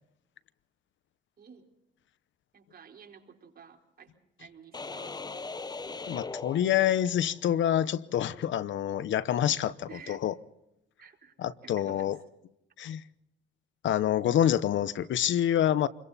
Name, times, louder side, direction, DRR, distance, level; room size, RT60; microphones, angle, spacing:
voice 1, 1.4-1.7 2.5-4.1 4.4-5.2 9.9-10.2 11.0-11.3 11.6-12.1, right 7 dB, 50° right, 4.3 m, -51 dB
sound 1, 4.7-7.4, left 3 dB, 20° left, 0.8 m, -40 dB
voice 2, 6.1-10.3 11.4-12.2 12.8-13.0 13.8-15.9, left 10 dB, 70° left, 0.9 m, -27 dB
27.5 x 22.5 x 4.2 m
cardioid pair, 90°, 20 cm